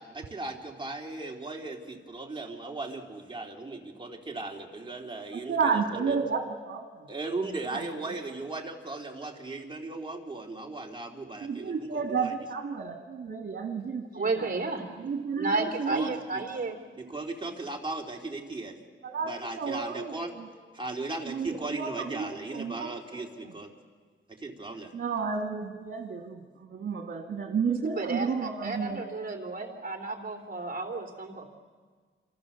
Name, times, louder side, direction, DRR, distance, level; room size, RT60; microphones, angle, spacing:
voice 1, 0.0-6.2 7.1-12.3 15.9-16.1 17.0-18.8 19.2-20.3 20.7-23.7 24.3-24.9, right 2 dB, 25° right, 0 dB, 3.2 m, -37 dB
voice 2, 5.3-7.1 7.7-8.2 11.4-14.5 15.0-16.2 19.0-20.5 21.3-23.2 24.9-29.0, right 5 dB, 80° right, 3 dB, 2.0 m, -32 dB
voice 3, 14.1-15.1 15.4-16.8 27.8-31.6, right 3 dB, 45° right, 2 dB, 3.6 m, -33 dB
27.5 x 27.0 x 7.1 m, 1.5 s
wide cardioid pair, 110°, 20 cm